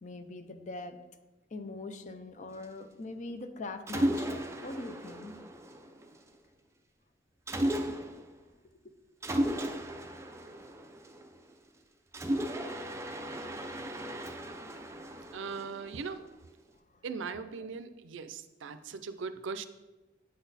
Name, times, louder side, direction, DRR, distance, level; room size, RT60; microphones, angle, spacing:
voice 1, 0.0-1.0 1.5-5.4, left 2 dB, 40° left, 8 dB, 0.5 m, -42 dB
Mechanisms, 3.9-6.3 7.5-8.3 9.2-11.5 12.1-16.3, right 1 dB, 15° right, 0.4 m, -35 dB
voice 2, 15.3-16.3 17.0-19.6, right 5 dB, 75° right, 12 dB, 0.4 m, -39 dB
8.5 x 4.0 x 4.0 m, 1.1 s
head